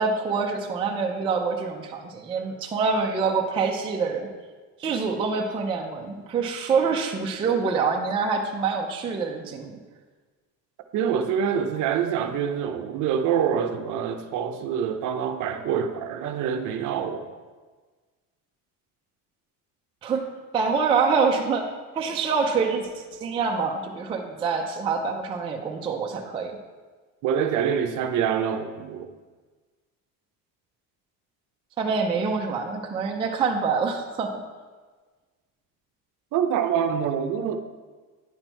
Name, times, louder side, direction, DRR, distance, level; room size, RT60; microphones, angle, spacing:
voice 1, 0.0-4.3 4.8-9.8 20.0-20.3 20.5-21.6 21.9-26.6 31.8-34.4, right 5 dB, 15° right, 1 dB, 0.3 m, -26 dB
voice 2, 10.9-17.3 27.2-29.1 36.3-37.6, right 8 dB, 50° right, 7 dB, 0.6 m, -26 dB
9.8 x 4.3 x 4.4 m, 1.4 s
cardioid pair, 170°, 38 cm